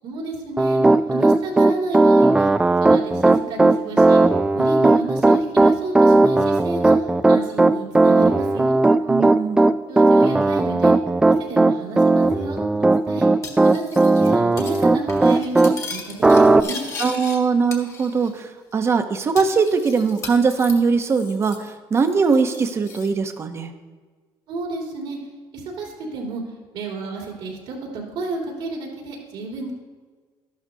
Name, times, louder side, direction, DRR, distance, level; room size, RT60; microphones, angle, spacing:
voice 1, 0.0-0.8 1.1-2.5 2.8-4.2 4.5-6.9 7.3-8.7 9.9-10.9 11.4-12.6 13.1-13.3 13.6-13.8 14.1-16.8 24.5-25.2 25.5-26.4 26.7-29.7, right 3 dB, 75° right, -1 dB, 3.3 m, -31 dB
Piano, 0.6-15.7 16.2-16.6, right 2 dB, 10° right, 0.3 m, -16 dB
voice 2, 9.1-9.6 17.0-23.7, right 5 dB, 30° right, 8 dB, 0.7 m, -21 dB
Cutlery silverware, 13.4-14.3 14.6-14.8 15.1-17.4 17.7-18.4 18.7-18.8 19.4-21.7 21.9-23.1, left 4 dB, 35° left, 1.4 m, -37 dB
13.0 x 11.5 x 2.7 m, 1.4 s
cardioid pair, 145°, 9 cm